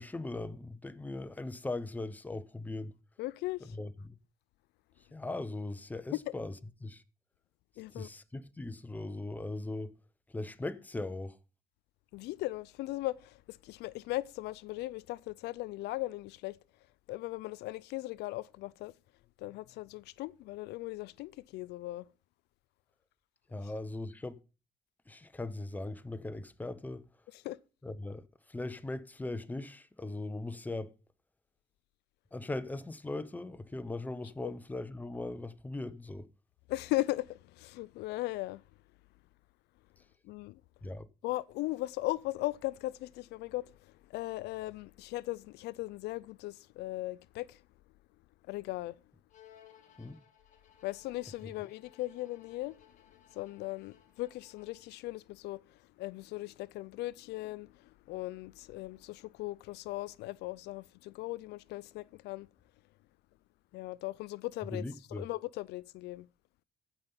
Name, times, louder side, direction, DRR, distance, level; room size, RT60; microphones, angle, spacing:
voice 1, 0.0-3.0 3.7-4.2 5.1-6.5 6.8-7.0 7.9-10.0 10.3-11.4 23.5-24.4 25.1-27.0 27.8-30.9 32.3-36.3 40.8-41.1 50.0-50.2 51.4-51.5 64.7-65.3, left 2 dB, 10° left, 0.8 m, -39 dB
voice 2, 3.2-3.8 6.3-6.4 7.8-8.1 12.1-16.6 17.1-18.9 19.4-22.1 27.3-27.6 34.4-34.5 36.7-38.6 40.2-40.6 41.2-47.6 48.5-48.9 50.8-52.8 53.3-62.5 63.7-64.8 65.1-66.3, left 18 dB, 80° left, 0.4 m, -38 dB
Bowed string instrument, 49.3-55.0, left 10 dB, 45° left, 2.1 m, -61 dB
14.5 x 5.5 x 5.5 m
cardioid pair, 110°, 17 cm